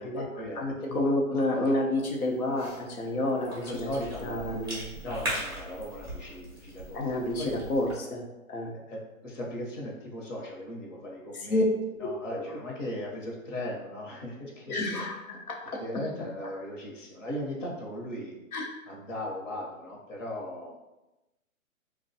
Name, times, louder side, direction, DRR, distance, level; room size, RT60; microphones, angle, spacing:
voice 1, 0.0-1.0 1.3-1.6 3.7-4.5 5.0-7.0 7.4-7.5 8.9-11.7 12.0-15.1 15.8-18.4 18.9-20.7, left 1 dB, 60° left, -2 dB, 0.9 m, -38 dB
voice 2, 0.6-3.9 4.2-4.8 6.9-8.2 8.5-8.7 11.3-11.6 12.3-12.6 14.7-15.8 18.5-18.8, left 1 dB, 90° left, -1 dB, 0.8 m, -29 dB
Cough / Chewing mastication, 2.0-8.0, right 1 dB, 20° right, 0.3 m, -40 dB
2.5 x 2.2 x 2.6 m, 0.99 s
hypercardioid pair, 145°, 42 cm